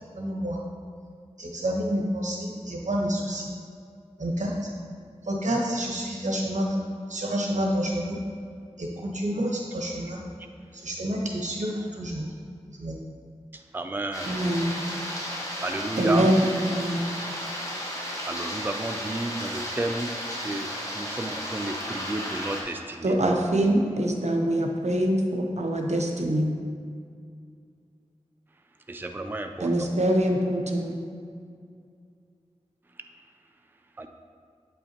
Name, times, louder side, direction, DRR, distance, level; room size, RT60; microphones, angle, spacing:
voice 1, 0.1-0.6 1.4-3.5 4.2-4.7 5.2-6.8 7.1-8.2 8.8-10.2 10.7-12.3 12.8-13.0, equal, 85° right, -2 dB, 1.1 m, -29 dB
voice 2, 13.5-14.5 15.6-16.3 18.3-20.2 20.4-20.7 20.9-23.1 28.9-29.9 34.0-34.1, right 2 dB, 15° right, 6 dB, 0.4 m, -32 dB
sound 1, 14.1-22.6, equal, 25° left, 1.4 m, -34 dB
voice 3, 14.2-14.7 16.0-17.0 23.0-26.5 29.6-30.9, right 1 dB, 70° right, 1 dB, 0.8 m, -24 dB
8.4 x 5.5 x 2.9 m, 2.3 s
wide cardioid pair, 40°, 12 cm